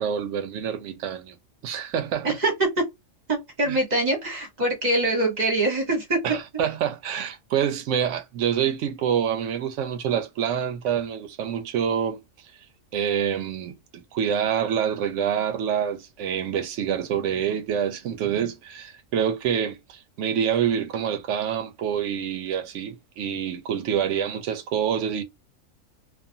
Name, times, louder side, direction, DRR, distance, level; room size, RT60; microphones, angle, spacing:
voice 1, 0.0-1.4 1.6-2.4 3.7-3.8 6.2-12.2 12.9-25.2, right 8 dB, 75° right, 0.9 m, -26 dB
voice 2, 3.3-6.2, right 2 dB, 40° right, 0.9 m, -24 dB
2.5 x 2.4 x 2.6 m
omnidirectional pair, 1.3 m